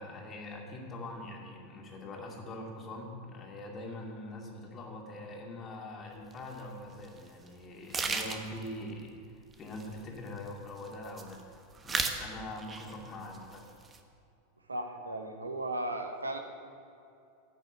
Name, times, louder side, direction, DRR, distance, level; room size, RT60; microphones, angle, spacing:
voice 1, 0.0-11.4 11.8-13.7, left 1 dB, 30° left, 0 dB, 2.3 m, -43 dB
sound 1, 6.3-6.4 7.0-7.2 7.5-7.6 7.9-8.7 9.5-10.5 10.8-11.4 11.7-12.3 12.6-13.1 13.3-14.0, right 4 dB, 25° right, 1.1 m, -34 dB
voice 2, 14.7-16.4, right 1 dB, 90° right, 4 dB, 1.1 m, -36 dB
10.5 x 6.3 x 8.3 m, 2.5 s
figure-of-eight pair, 90°, 0 cm